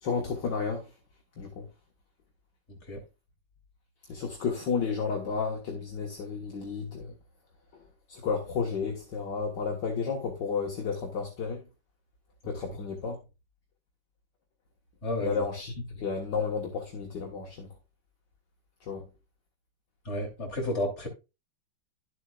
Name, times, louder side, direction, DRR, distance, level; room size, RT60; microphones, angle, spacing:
voice 1, 0.0-0.9 1.4-1.7 4.1-7.1 7.7-7.8 8.1-11.6 12.4-13.2 15.2-17.7 18.9-19.1, left 5 dB, 60° left, 1.9 m, -32 dB
voice 2, 2.7-3.0 12.4-12.5 15.0-15.4 20.0-21.1, left 1 dB, 35° left, 3.3 m, -32 dB
11.5 x 8.1 x 2.4 m
omnidirectional pair, 2.2 m